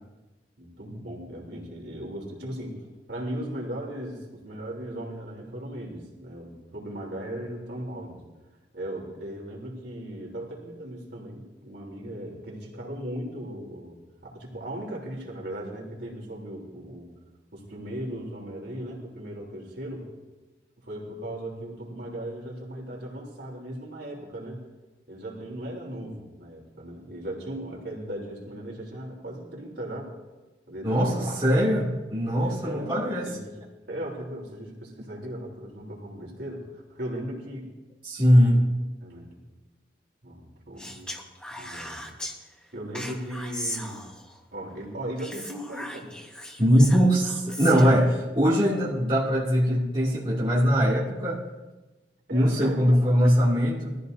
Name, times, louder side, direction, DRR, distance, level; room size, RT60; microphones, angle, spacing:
voice 1, 0.6-8.2 8.7-17.1 17.5-20.1 20.8-24.6 25.1-30.1 30.7-31.3 32.4-33.6 33.9-37.7 38.3-38.6 39.0-39.3 40.2-41.1 41.6-42.1 42.7-44.1 44.5-46.1 52.3-52.8 53.7-53.8, right 1 dB, 65° right, -2 dB, 3.5 m, -37 dB
voice 2, 30.8-33.3 38.0-38.6 46.6-51.4 52.3-54.0, equal, 25° right, -7 dB, 2.6 m, -21 dB
Speech, 40.8-42.3 42.9-44.4 45.2-48.1, left 1 dB, 5° left, 1.2 m, -38 dB
21.5 x 14.5 x 2.7 m, 1.1 s
head